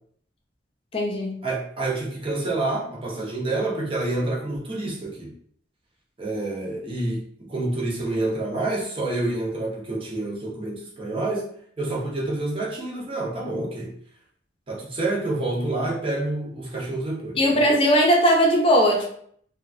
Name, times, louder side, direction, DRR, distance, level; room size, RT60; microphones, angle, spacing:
voice 1, 0.9-1.4 17.4-19.1, equal, 30° left, -1 dB, 0.6 m, -19 dB
voice 2, 1.4-5.3 6.2-11.5 11.8-13.9 14.7-17.6, right 2 dB, 30° right, -3 dB, 0.8 m, -28 dB
2.9 x 2.3 x 2.6 m, 0.62 s
head